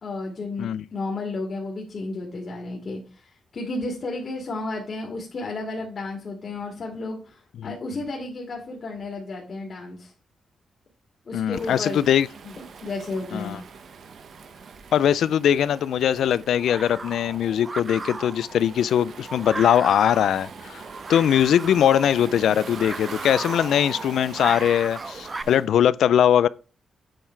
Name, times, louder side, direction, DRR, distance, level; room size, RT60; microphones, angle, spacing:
voice 1, 0.0-10.1 11.3-12.0 12.4-12.5 12.8-13.6, left 2 dB, 50° left, 2.2 m, -32 dB
voice 2, 11.3-12.3 13.3-13.6 14.9-20.8 21.1-26.5, left 9 dB, 85° left, 0.4 m, -21 dB
Waves surf, 11.5-25.7, right 5 dB, 65° right, 1.1 m, -43 dB
sound 1, 15.6-25.4, right 3 dB, 25° right, 0.5 m, -37 dB
8.9 x 4.6 x 4.5 m
cardioid pair, 100°, 0 cm